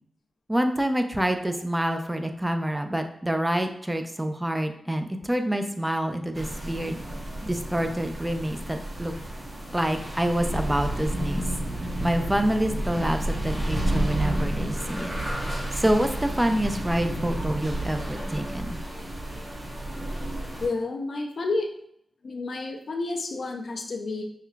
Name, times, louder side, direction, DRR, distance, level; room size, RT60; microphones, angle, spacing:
voice 1, 0.5-7.0 7.4-9.1 9.7-11.4 12.0-15.1 15.7-18.8, right 1 dB, 15° right, 6 dB, 0.5 m, -27 dB
sound 1, 6.3-20.7, right 1 dB, 35° right, 1.1 m, -31 dB
voice 2, 20.6-21.7 22.2-24.2, left 3 dB, 65° left, 2 dB, 0.5 m, -30 dB
5.5 x 2.2 x 2.2 m, 0.72 s
cardioid pair, 50°, 0 cm